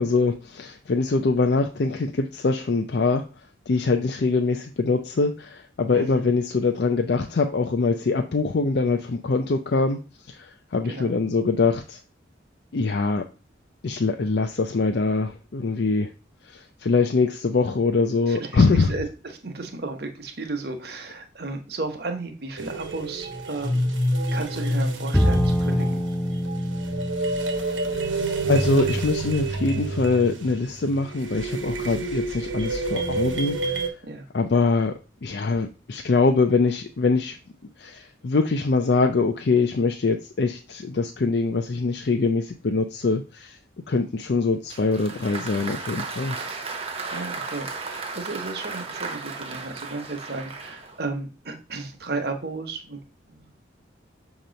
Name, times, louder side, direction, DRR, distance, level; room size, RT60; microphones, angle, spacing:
voice 1, 0.0-3.3 3.7-10.0 10.3-12.0 12.7-13.2 13.8-16.1 16.4-18.9 27.8-28.2 28.4-33.9 34.3-34.9 35.2-37.4 37.8-43.6 43.9-46.4, left 3 dB, 60° left, 4 dB, 0.5 m, -23 dB
voice 2, 5.9-6.3 10.8-11.2 18.3-24.0 24.3-26.0 31.8-32.1 34.0-34.3 47.1-53.0 53.3-53.5, right 3 dB, 55° right, 4 dB, 1.0 m, -34 dB
sound 1, 22.6-33.9, right 1 dB, 90° right, 1.1 m, -28 dB
Bowed string instrument, 25.1-28.5, equal, ahead, 0.7 m, -26 dB
Applause, 44.7-51.0, right 4 dB, 30° right, 0.8 m, -35 dB
6.5 x 3.0 x 5.1 m, 0.33 s
head